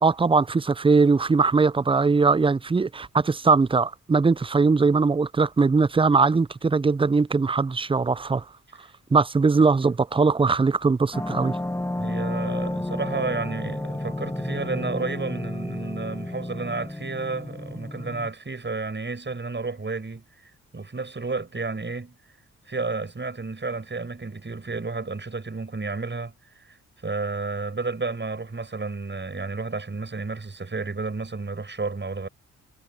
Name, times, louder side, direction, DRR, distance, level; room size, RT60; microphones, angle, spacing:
voice 1, 0.0-8.4 9.1-11.6, right 4 dB, 15° right, 0.5 m, -20 dB
sound 1, 11.1-18.3, left 1 dB, 10° left, 0.9 m, -31 dB
voice 2, 11.9-20.2 20.7-22.2 22.6-26.8 27.0-32.3, right 3 dB, 30° right, 6.4 m, -31 dB
hypercardioid pair, 40°, 36 cm